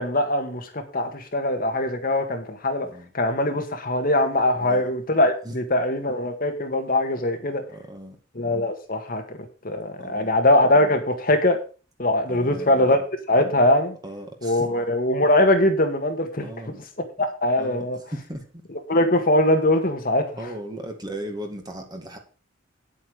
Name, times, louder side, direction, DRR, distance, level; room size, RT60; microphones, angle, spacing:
voice 1, 0.0-2.9 3.1-7.6 8.3-9.4 9.6-11.6 12.0-13.0 13.3-14.0 14.4-16.5 17.2-18.0 18.9-20.5, left 1 dB, 45° left, 1.7 m, -22 dB
voice 2, 4.6-4.9 5.4-5.6 7.7-8.2 10.0-10.4 12.3-12.9 14.0-14.7 16.4-16.8 17.6-17.8 18.1-18.4 20.4-22.2, right 1 dB, 20° right, 2.2 m, -37 dB
9.8 x 8.5 x 5.0 m
head